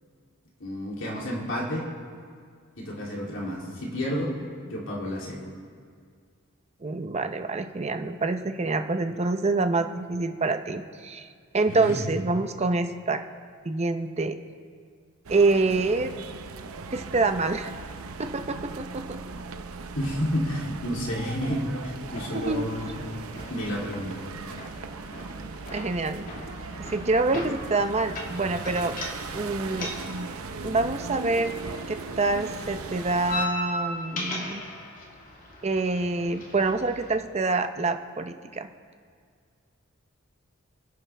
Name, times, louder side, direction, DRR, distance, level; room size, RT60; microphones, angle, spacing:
voice 1, 0.6-1.9 2.8-4.3 4.7-5.5 11.7-12.0 19.9-23.0 23.5-24.2, equal, 65° left, -4 dB, 3.0 m, -30 dB
voice 2, 6.8-11.3 11.5-13.2 13.6-14.4 15.3-16.1 16.9-17.7 18.2-19.0 22.3-22.7 25.7-26.3 26.9-28.9 29.3-29.9 30.6-31.5 31.9-34.6 35.6-38.7, right 3 dB, 30° right, 7 dB, 0.7 m, -26 dB
sound 1, 15.2-33.5, right 4 dB, 90° right, 0.7 m, -38 dB
sound 2, 22.1-37.1, left 1 dB, 40° left, 2.3 m, -39 dB
30.0 x 10.5 x 3.4 m, 2.1 s
head